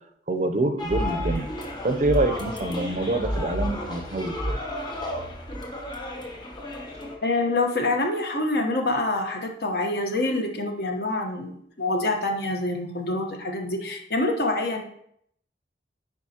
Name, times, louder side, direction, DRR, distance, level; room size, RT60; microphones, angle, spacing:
voice 1, 0.3-1.5 1.8-4.6, right 2 dB, 45° right, 7 dB, 0.5 m, -26 dB
sound 1, 0.8-7.2, equal, 25° left, 0.9 m, -31 dB
voice 2, 7.2-14.8, left 2 dB, 60° left, 3 dB, 1.0 m, -26 dB
9.3 x 4.8 x 2.8 m, 0.69 s
head